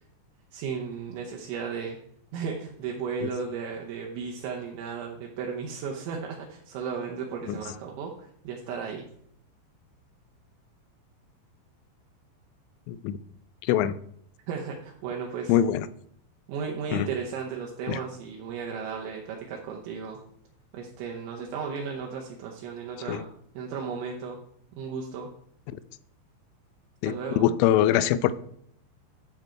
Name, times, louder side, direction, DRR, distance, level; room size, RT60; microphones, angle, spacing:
voice 1, 0.5-2.0 2.3-9.1 14.5-15.5 16.5-20.2 20.7-23.3 23.5-24.4 24.7-25.3 27.0-27.5, right 6 dB, 75° right, -1 dB, 3.1 m, -35 dB
voice 2, 12.9-13.2 13.6-14.0 15.5-15.9 16.9-17.1 17.9-18.0 23.1-23.2 25.7-25.8 27.0-28.3, left 11 dB, 85° left, 16 dB, 2.9 m, -23 dB
12.0 x 6.5 x 4.5 m, 0.67 s
omnidirectional pair, 5.8 m